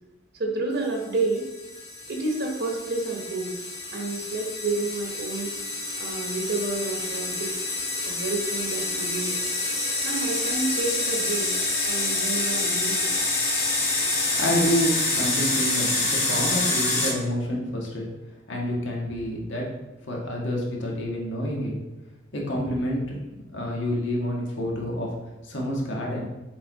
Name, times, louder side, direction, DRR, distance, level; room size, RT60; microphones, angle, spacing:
voice 1, 0.3-1.5 2.1-3.6 3.9-5.5 6.0-7.6 8.1-9.4 10.0-11.5 11.8-13.1, right 3 dB, 60° right, 1 dB, 1.1 m, -29 dB
sound 1, 1.0-17.1, left 2 dB, 35° left, 2.0 m, -27 dB
voice 2, 14.4-18.1 18.5-19.6 20.1-21.7 22.3-23.0 23.5-25.1 25.4-26.2, equal, 70° left, -2 dB, 1.7 m, -28 dB
7.1 x 4.5 x 4.0 m, 1.0 s
head